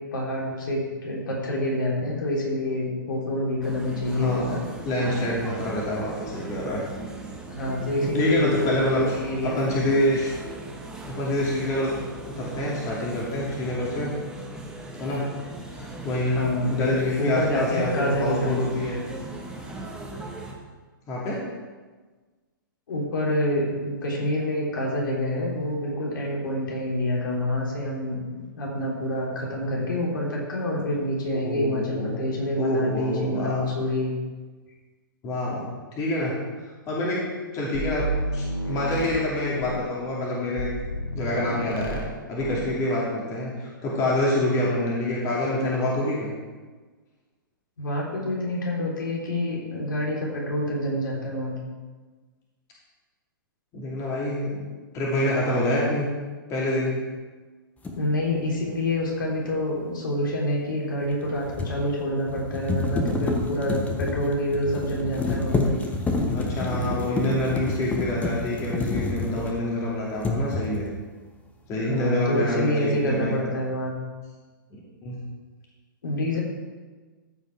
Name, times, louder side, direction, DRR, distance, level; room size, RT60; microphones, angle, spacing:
voice 1, 0.1-4.6 7.5-8.7 9.0-9.8 16.3-18.6 22.9-28.2 28.6-34.1 47.8-51.6 57.9-65.8 71.8-73.9 76.0-76.4, left 1 dB, 65° left, -3 dB, 3.5 m, -27 dB
sound 1, 3.6-20.5, right 2 dB, 5° right, 1.5 m, -39 dB
voice 2, 4.1-4.5 4.8-6.8 8.0-9.0 9.4-10.3 11.0-12.0 12.3-14.2 15.0-15.3 15.7-19.0 21.1-21.4 31.3-32.3 32.6-33.6 35.2-35.7 36.0-36.5 36.9-40.7 41.1-42.0 42.3-46.3 53.7-54.6 54.9-56.1 56.5-57.0 66.3-70.9 71.7-73.4 74.7-75.2, left 1 dB, 30° left, -5 dB, 2.6 m, -26 dB
sound 2, 37.7-39.9 40.6-42.1 42.4-42.7, equal, 90° left, 2.0 m, -31 dB
sound 3, 57.8-58.0 61.1-69.8 70.2-71.0, left 2 dB, 10° left, 1.3 m, -28 dB
14.5 x 5.4 x 4.7 m, 1.4 s
hypercardioid pair, 120°, 12 cm